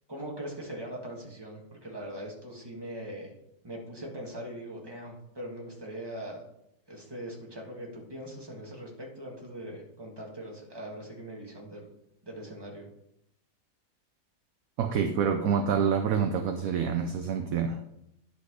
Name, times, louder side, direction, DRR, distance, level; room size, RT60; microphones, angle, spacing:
voice 1, 0.1-3.3 3.6-6.4 6.9-11.9 12.2-12.8, right 1 dB, 15° right, 1.5 m, -41 dB
voice 2, 14.8-17.8, right 7 dB, 70° right, 0.9 m, -27 dB
10.5 x 4.2 x 4.8 m
omnidirectional pair, 1.8 m